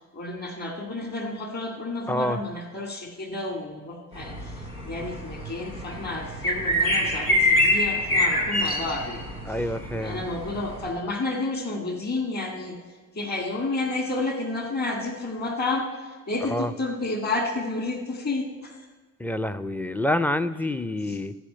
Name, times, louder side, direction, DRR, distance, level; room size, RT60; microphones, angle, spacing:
voice 1, 0.1-9.3 9.9-12.8 13.1-18.8 21.1-21.2, left 2 dB, 40° left, 3 dB, 2.1 m, -31 dB
voice 2, 2.1-2.4 9.5-10.2 16.4-16.7 19.2-21.4, left 1 dB, 5° left, 12 dB, 0.5 m, -27 dB
sound 1, 4.1-10.9, left 1 dB, 85° left, 1.4 m, -26 dB
14.5 x 4.9 x 8.6 m, 1.4 s
figure-of-eight pair, 40°, 42 cm